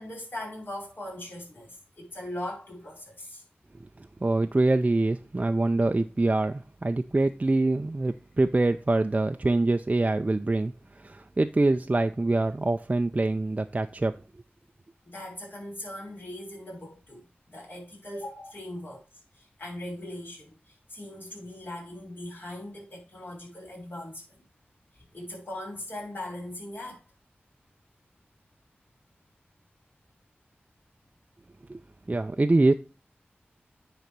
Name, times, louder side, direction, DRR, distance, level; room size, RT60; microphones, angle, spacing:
voice 1, 0.0-3.4 15.0-19.0 19.3-24.4 24.9-27.0, left 1 dB, 50° left, 4.1 m, -40 dB
voice 2, 4.0-14.1 31.7-31.8 32.1-32.7, right 2 dB, 35° right, 0.5 m, -25 dB
9.8 x 4.0 x 4.6 m
cardioid pair, 40°, 4 cm